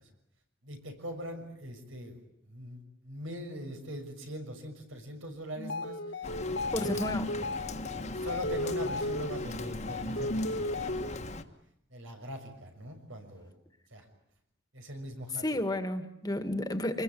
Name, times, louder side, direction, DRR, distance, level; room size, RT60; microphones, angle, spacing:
voice 1, 0.6-2.2 2.5-6.0 6.8-7.1 8.0-11.2 11.9-13.5 13.9-14.1 14.7-15.4, equal, 85° right, 5 dB, 6.2 m, -42 dB
sound 1, 5.6-11.3, left 2 dB, 65° left, 1.6 m, -34 dB
Rain, 6.2-11.4, left 2 dB, 35° left, 1.5 m, -40 dB
voice 2, 6.7-7.3 15.4-17.0, left 1 dB, 20° left, 8 dB, 1.8 m, -31 dB
26.5 x 21.0 x 9.3 m, 0.76 s
head